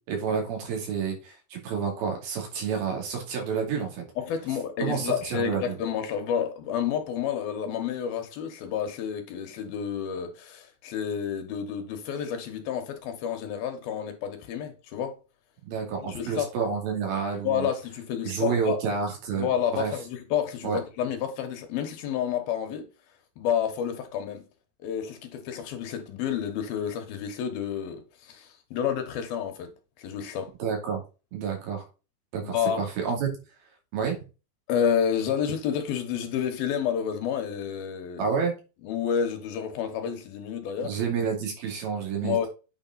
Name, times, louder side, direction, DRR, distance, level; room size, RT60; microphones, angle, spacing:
voice 1, 0.1-4.0 4.8-5.8 15.6-17.7 18.2-19.9 20.6-20.8 30.6-31.0 31.3-31.9 32.3-33.3 33.9-34.2 38.2-38.5 40.8-42.5, right 6 dB, 70° right, 4.4 m, -29 dB
voice 2, 4.2-15.2 16.0-16.5 17.4-18.8 19.3-22.9 23.4-24.4 24.8-29.7 30.0-30.5 32.4-32.9 34.7-38.4 38.8-41.0 42.2-42.5, left 8 dB, 70° left, 3.0 m, -30 dB
8.9 x 5.2 x 4.1 m
omnidirectional pair, 4.6 m